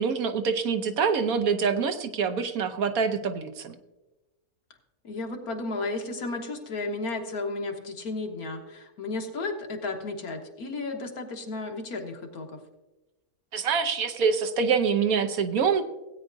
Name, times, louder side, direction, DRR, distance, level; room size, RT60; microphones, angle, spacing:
voice 1, 0.0-3.7 13.5-15.9, right 6 dB, 70° right, 8 dB, 1.2 m, -25 dB
voice 2, 5.0-12.6, left 3 dB, 70° left, 3 dB, 1.8 m, -33 dB
17.0 x 9.2 x 2.6 m, 1.1 s
omnidirectional pair, 1.6 m